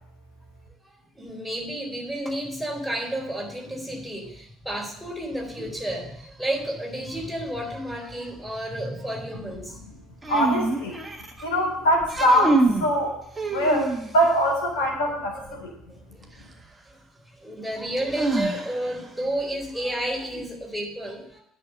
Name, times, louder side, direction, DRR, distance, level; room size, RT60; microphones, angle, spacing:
voice 1, 0.8-9.8 10.9-11.1 14.8-14.9 15.3-15.5 15.8-16.2 16.9-17.0 17.3-21.4, right 1 dB, ahead, -1 dB, 4.3 m, -31 dB
sound 1, 10.2-11.4 12.0-12.9 13.4-14.3 16.2-16.3 18.1-19.0, right 2 dB, 15° right, 1.5 m, -25 dB
voice 2, 10.3-11.0 11.4-13.2 13.5-15.7, equal, 70° left, -1 dB, 3.7 m, -23 dB
9.6 x 6.0 x 7.9 m, 0.75 s
figure-of-eight pair, 55°, 0 cm